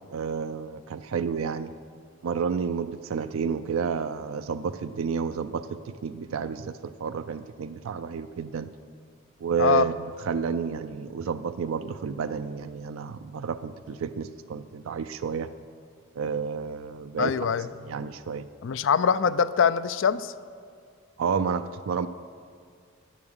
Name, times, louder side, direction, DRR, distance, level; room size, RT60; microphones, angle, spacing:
voice 1, 0.1-1.7 2.2-8.7 9.4-9.9 10.3-15.5 16.2-17.5 17.8-18.4 21.2-22.1, right 6 dB, 75° right, 10 dB, 0.4 m, -30 dB
voice 2, 9.6-9.9 17.2-17.7 18.6-20.3, left 7 dB, 60° left, 15 dB, 0.4 m, -23 dB
10.0 x 7.2 x 7.9 m, 2.2 s
head